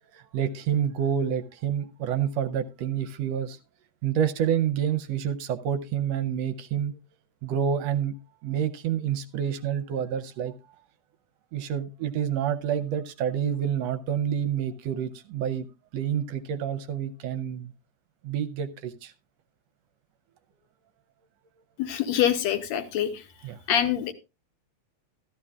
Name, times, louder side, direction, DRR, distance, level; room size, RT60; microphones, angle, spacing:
voice 1, 0.1-3.6 4.0-7.0 7.4-8.1 8.4-10.5 11.5-15.7 15.9-17.7 18.2-19.1 23.4-23.6, right 9 dB, 75° right, 11 dB, 1.7 m, -28 dB
voice 2, 21.8-23.1 23.7-24.1, left 10 dB, 70° left, 9 dB, 2.3 m, -25 dB
14.0 x 13.0 x 2.4 m, 0.26 s
omnidirectional pair, 3.3 m